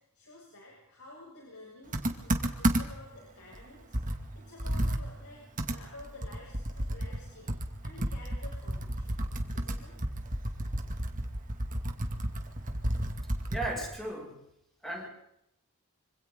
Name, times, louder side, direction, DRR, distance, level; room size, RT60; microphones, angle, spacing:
voice 1, 0.1-7.5 7.8-9.2 9.5-9.9, left 2 dB, 85° left, -3 dB, 6.9 m, -51 dB
Computer keyboard, 1.9-3.1 3.5-3.6 3.9-7.2 7.5-14.0, right 1 dB, 35° right, 2.4 m, -32 dB
voice 2, 13.5-14.3 14.8-15.1, right 1 dB, ahead, -1 dB, 6.9 m, -35 dB
26.5 x 26.5 x 4.0 m, 0.79 s
head